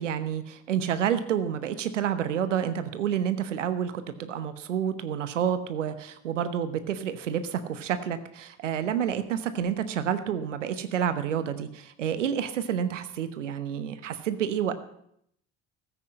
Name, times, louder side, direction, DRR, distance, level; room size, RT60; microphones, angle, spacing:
voice 1, 0.0-14.7, right 9 dB, 90° right, 11 dB, 0.9 m, -29 dB
14.5 x 8.1 x 7.6 m, 0.72 s
hypercardioid pair, 60°, 36 cm